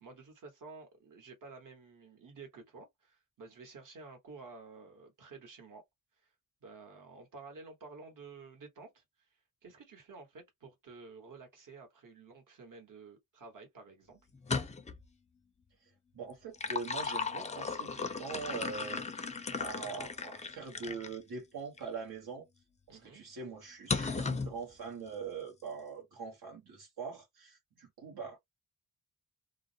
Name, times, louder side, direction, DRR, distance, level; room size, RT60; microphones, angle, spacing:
voice 1, 0.0-5.8 6.2-6.3 6.6-9.0 9.6-14.2 22.9-23.2, right 4 dB, 55° right, 1.1 m, -51 dB
sound 1, 14.3-15.0 16.3-21.2 21.8-21.9 23.9-24.5, left 4 dB, 20° left, 0.3 m, -36 dB
voice 2, 16.1-19.2 19.5-22.5 22.9-28.4, right 5 dB, 80° right, 1.0 m, -43 dB
2.2 x 2.0 x 2.7 m
wide cardioid pair, 105°, 37 cm